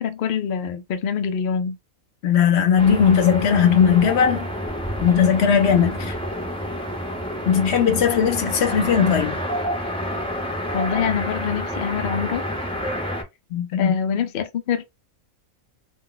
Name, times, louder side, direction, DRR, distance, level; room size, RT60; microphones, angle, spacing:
voice 1, 0.0-1.8 10.7-12.4 13.8-14.8, left 7 dB, 85° left, 0.4 m, -25 dB
voice 2, 2.2-4.5 5.0-6.2 7.4-9.4 13.5-13.9, left 7 dB, 60° left, 0.9 m, -18 dB
sound 1, 2.8-13.2, equal, 10° left, 0.4 m, -29 dB
2.4 x 2.3 x 3.8 m
omnidirectional pair, 1.5 m